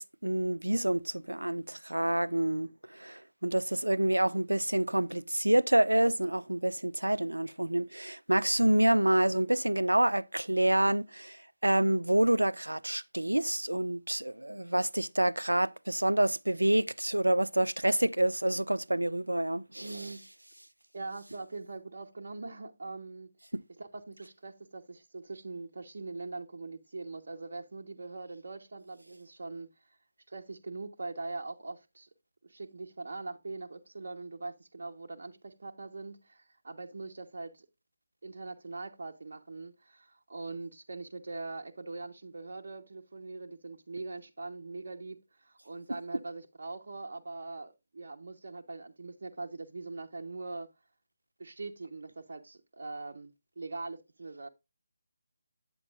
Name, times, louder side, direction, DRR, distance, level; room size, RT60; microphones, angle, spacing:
voice 1, 0.0-20.1 23.5-23.6, right 1 dB, 85° right, 0.4 m, -28 dB
voice 2, 19.8-20.2 20.9-23.3 23.8-29.7 30.3-32.1 32.4-37.7 38.2-50.7 51.4-53.3 53.6-54.5, right 3 dB, 55° right, 1.0 m, -42 dB
9.0 x 8.5 x 2.4 m
figure-of-eight pair, 150°, 0 cm